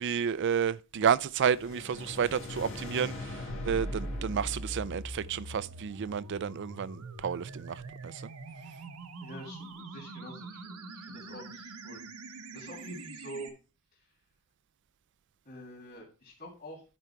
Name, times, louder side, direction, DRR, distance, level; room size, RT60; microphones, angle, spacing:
voice 1, 0.0-8.2, right 7 dB, 55° right, 0.4 m, -31 dB
sound 1, 1.3-6.5, left 2 dB, 60° left, 2.3 m, -43 dB
sound 2, 3.5-13.5, right 2 dB, 90° right, 1.3 m, -42 dB
voice 2, 9.2-12.0 12.5-13.5 15.4-16.8, right 1 dB, 40° left, 3.0 m, -46 dB
11.5 x 4.6 x 4.6 m
head